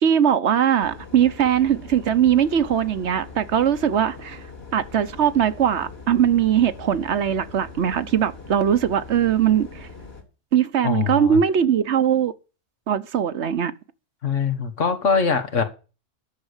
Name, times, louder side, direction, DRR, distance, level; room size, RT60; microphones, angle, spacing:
voice 1, 0.0-4.4 4.7-9.9 10.5-12.3 12.9-13.7, right 9 dB, 65° right, 1.1 m, -20 dB
sound 1, 0.8-10.2, left 4 dB, 55° left, 3.0 m, -41 dB
voice 2, 10.8-11.4 14.2-15.6, left 5 dB, 75° left, 2.0 m, -22 dB
10.5 x 6.8 x 8.0 m
omnidirectional pair, 1.3 m